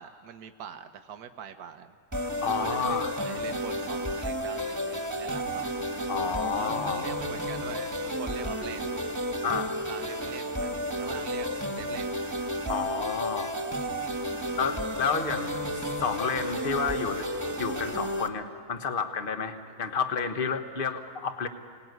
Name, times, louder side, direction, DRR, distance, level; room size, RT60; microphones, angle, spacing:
voice 1, 0.0-1.9 2.6-5.7 6.5-8.9 9.9-11.5 11.7-12.2 14.3-14.6 19.7-19.8, right 8 dB, 85° right, 8 dB, 1.5 m, -43 dB
sound 1, 2.1-18.3, equal, 10° right, 1.6 m, -32 dB
voice 2, 2.4-3.1 6.1-7.2 9.4-9.8 12.7-13.5 14.6-15.6 16.0-17.3 17.6-21.5, left 5 dB, 40° left, 7 dB, 1.4 m, -30 dB
25.0 x 18.5 x 9.4 m, 2.2 s
omnidirectional pair, 1.6 m